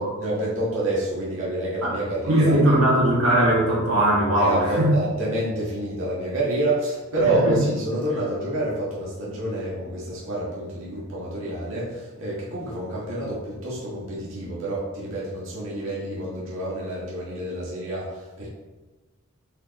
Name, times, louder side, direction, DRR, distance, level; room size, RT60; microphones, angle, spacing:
voice 1, 0.0-2.6 4.4-18.5, right 1 dB, 60° right, -7 dB, 1.7 m, -28 dB
voice 2, 2.2-4.9 7.4-7.6, right 1 dB, 80° right, -5 dB, 2.0 m, -19 dB
7.9 x 5.3 x 3.1 m, 1.2 s
head